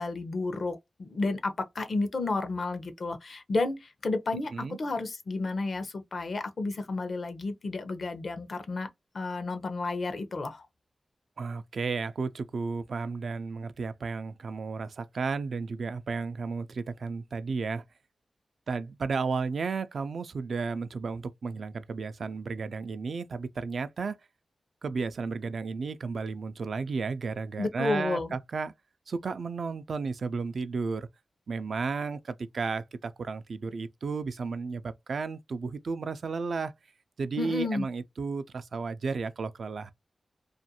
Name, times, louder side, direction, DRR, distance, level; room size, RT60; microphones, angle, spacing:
voice 1, 0.0-8.9 9.1-10.7 27.6-28.3 37.4-37.9, left 3 dB, 65° left, 0.6 m, -31 dB
voice 2, 11.4-17.8 18.7-24.2 24.8-28.7 29.1-31.1 31.5-36.7 37.2-39.9, right 4 dB, 75° right, 0.3 m, -33 dB
2.5 x 2.2 x 2.7 m
cardioid pair, 50°, 0 cm